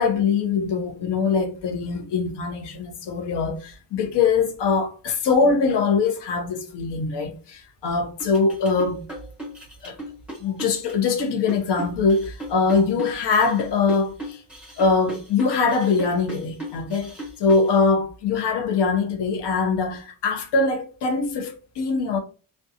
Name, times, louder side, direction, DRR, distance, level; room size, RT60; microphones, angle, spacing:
voice 1, 0.0-9.0 9.8-10.0 10.4-14.4 14.8-22.2, left 4 dB, 60° left, 0.7 m, -22 dB
sound 1, 8.2-17.7, equal, 5° right, 1.1 m, -36 dB
2.4 x 2.2 x 2.6 m
cardioid pair, 145°, 46 cm